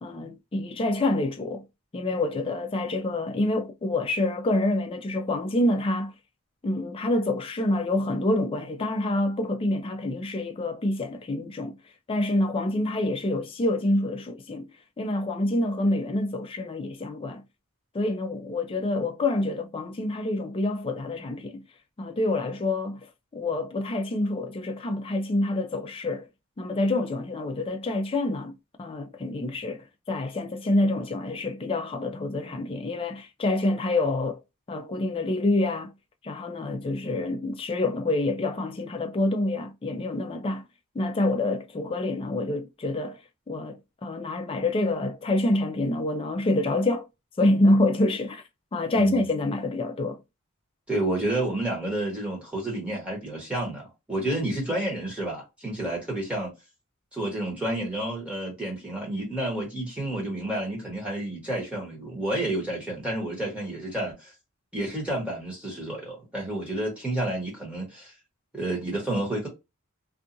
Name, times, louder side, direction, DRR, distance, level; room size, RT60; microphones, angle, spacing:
voice 1, 0.0-1.6 1.9-6.1 6.6-11.8 12.1-14.7 15.0-17.4 17.9-21.6 22.0-26.3 26.6-34.4 34.7-35.9 36.2-40.6 40.9-43.2 43.5-47.1 47.4-48.4 48.7-50.2, left 2 dB, 25° left, 0.3 m, -27 dB
voice 2, 48.9-49.2 50.9-56.5 57.1-64.3 64.7-68.1 68.5-69.5, right 1 dB, 5° right, 1.2 m, -30 dB
2.7 x 2.4 x 2.5 m
head